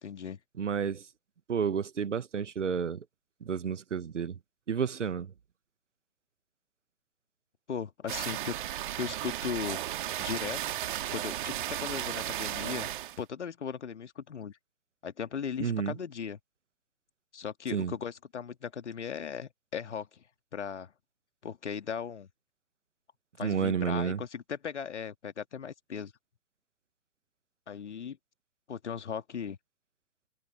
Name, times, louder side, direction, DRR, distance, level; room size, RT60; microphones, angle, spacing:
voice 1, 0.0-0.4 7.7-8.5 9.0-9.8 10.2-10.8 11.1-11.5 11.8-12.9 13.2-14.6 15.0-16.4 17.3-20.2 20.5-20.9 21.4-22.3 23.4-26.1 27.7-28.2 28.7-29.6, left 7 dB, 60° left, 2.1 m, -37 dB
voice 2, 0.6-1.1 1.5-3.0 3.4-4.4 4.7-5.3 15.6-16.0 17.7-17.9 23.4-24.2, right 7 dB, 65° right, 1.2 m, -31 dB
sound 1, 8.1-13.2, right 13 dB, 40° right, 2.2 m, -35 dB
figure-of-eight pair, 125°, 39 cm